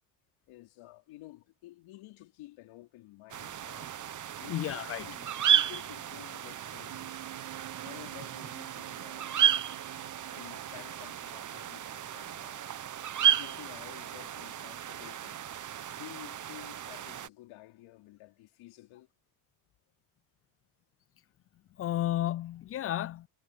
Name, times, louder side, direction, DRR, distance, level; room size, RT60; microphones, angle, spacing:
voice 1, 0.5-4.0 4.4-4.6 5.1-7.4 7.8-9.4 10.3-12.7 13.2-15.5 15.9-19.1, left 17 dB, 70° left, 4.4 m, -52 dB
sound 1, 3.3-17.3, right 9 dB, 35° right, 1.2 m, -33 dB
voice 2, 4.5-5.1 21.8-23.3, left 13 dB, 30° left, 0.3 m, -32 dB
sound 2, 6.9-11.7, right 21 dB, 80° right, 2.8 m, -50 dB
supercardioid pair, 100°, 49 cm